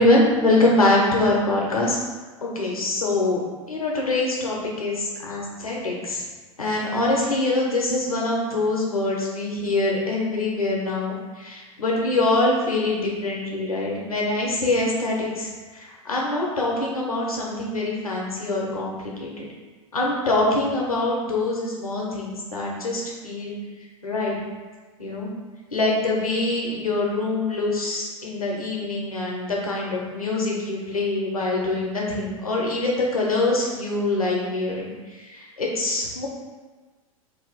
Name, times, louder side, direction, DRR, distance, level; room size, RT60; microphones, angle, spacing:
voice 1, 0.0-2.0 2.4-6.2 6.6-19.3 19.9-23.6 24.0-24.4 25.0-25.3 25.7-34.9 35.2-36.3, left 2 dB, 90° left, -3 dB, 0.8 m, -24 dB
2.8 x 2.4 x 3.9 m, 1.3 s
figure-of-eight pair, 90°, 18 cm